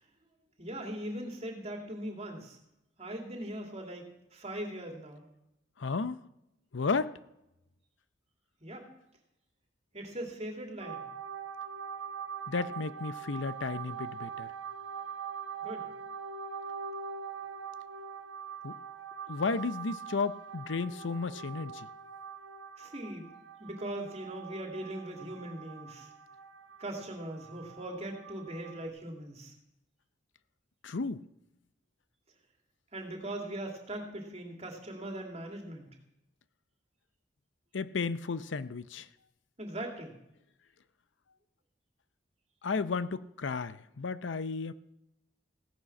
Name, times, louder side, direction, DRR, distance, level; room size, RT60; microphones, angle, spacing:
voice 1, 0.6-2.6 3.0-4.1 4.3-5.2 8.6-8.9 9.9-11.0 15.6-15.8 22.8-23.3 23.6-26.1 26.8-29.5 32.9-35.9 39.6-40.2, right 1 dB, 35° right, 2 dB, 2.7 m, -40 dB
voice 2, 5.8-6.2 6.7-7.1 12.5-14.5 18.6-18.7 19.3-21.9 30.8-31.2 37.7-39.1 42.6-44.7, left 4 dB, 80° left, 14 dB, 0.6 m, -33 dB
sound 1, 10.8-28.9, right 7 dB, 80° right, 1.2 m, -43 dB
16.5 x 9.9 x 6.0 m, 0.86 s
head